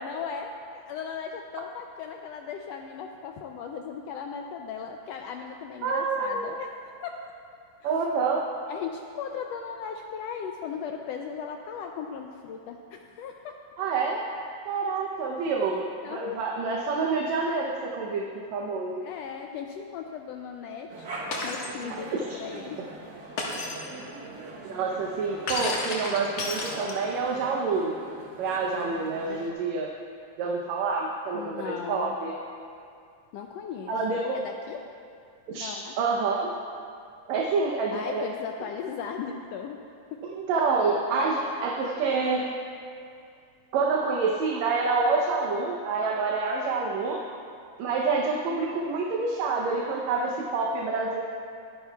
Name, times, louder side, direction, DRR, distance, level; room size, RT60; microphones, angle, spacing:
voice 1, 0.0-6.7 7.0-7.2 7.8-7.9 8.7-13.6 16.0-16.4 19.0-21.1 21.4-22.8 25.6-25.7 31.3-32.2 33.3-33.9 34.3-34.8 35.5-35.9 37.9-39.8 40.1-40.2, left 7 dB, 85° left, 3 dB, 1.4 m, -37 dB
voice 2, 5.8-6.5 7.8-8.4 13.8-14.2 14.7-15.8 16.1-18.2 18.5-19.0 24.7-27.9 28.4-29.9 30.4-32.4 33.9-34.4 35.5-35.7 36.0-36.5 37.3-38.3 40.3-42.5 43.7-47.2 47.8-51.2, right 4 dB, 70° right, -1 dB, 2.0 m, -27 dB
sound 1, 20.9-29.5, right 2 dB, 50° right, 1.3 m, -41 dB
Shatter, 21.3-21.8 23.4-23.9 25.5-27.2, left 3 dB, 60° left, 2.4 m, -32 dB
22.5 x 10.0 x 2.3 m, 2.4 s
omnidirectional pair, 3.4 m